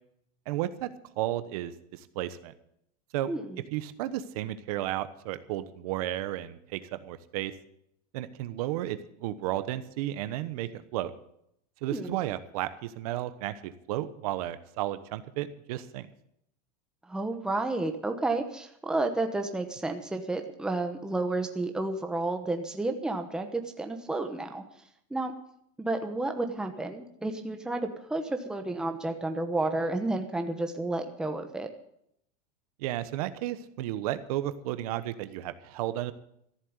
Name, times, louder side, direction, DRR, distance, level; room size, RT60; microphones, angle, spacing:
voice 1, 0.5-0.9 1.2-2.5 3.1-3.3 3.7-7.5 8.1-11.1 11.8-16.1 32.8-36.1, right 14 dB, 65° right, 12 dB, 1.1 m, -33 dB
voice 2, 3.3-3.6 11.9-12.2 17.1-24.6 25.1-25.3 25.8-31.7, right 2 dB, 5° right, 5 dB, 1.0 m, -31 dB
14.0 x 7.5 x 9.6 m, 0.75 s
supercardioid pair, 165°, 20 cm